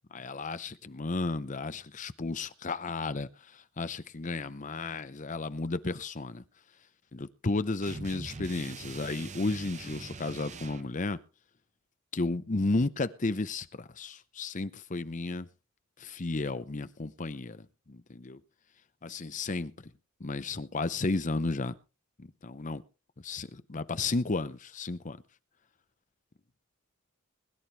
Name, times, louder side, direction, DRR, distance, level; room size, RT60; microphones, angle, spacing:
voice 1, 0.1-3.3 3.8-6.4 7.1-11.2 12.1-15.5 16.0-17.6 17.9-18.4 19.0-19.7 20.2-21.8 22.2-22.8 23.2-25.2, left 3 dB, 35° left, 0.7 m, -33 dB
sound 1, 7.8-10.9, right 4 dB, 35° right, 0.8 m, -43 dB
21.0 x 11.0 x 3.4 m
head